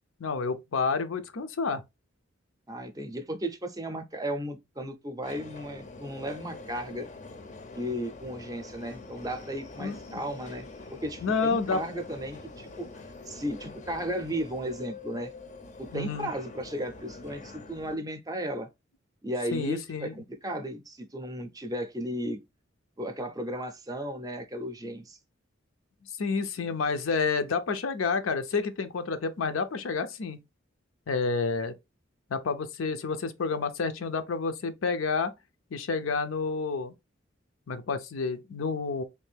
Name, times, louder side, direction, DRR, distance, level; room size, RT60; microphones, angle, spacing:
voice 1, 0.2-1.8 9.8-10.2 11.2-11.8 15.9-16.3 19.5-20.1 26.2-30.4 31.1-31.7 32.3-35.3 35.7-36.9 37.7-39.0, left 4 dB, 85° left, 0.5 m, -29 dB
voice 2, 2.7-7.1 7.7-12.9 13.3-15.3 15.8-18.7 19.2-22.4 23.0-25.2, equal, 20° right, 0.5 m, -35 dB
Subway metro underground, 5.2-18.0, left 3 dB, 40° left, 0.5 m, -45 dB
3.3 x 2.5 x 3.3 m
head